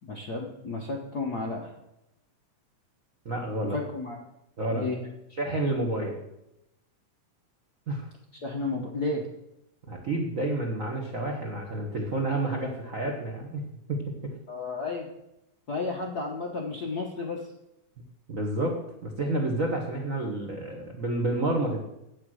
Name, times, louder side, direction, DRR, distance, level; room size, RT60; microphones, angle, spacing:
voice 1, 0.0-1.7 3.6-4.2 4.7-5.0 8.3-9.3 14.5-15.1 15.7-17.5, left 3 dB, 65° left, 0 dB, 0.9 m, -32 dB
voice 2, 3.2-3.8 4.6-4.8 5.4-6.2 7.9-8.1 9.9-13.6 13.9-14.3 18.3-18.8 19.0-21.8, right 2 dB, 75° right, 1 dB, 0.7 m, -29 dB
8.8 x 8.6 x 6.3 m, 0.87 s
omnidirectional pair, 3.5 m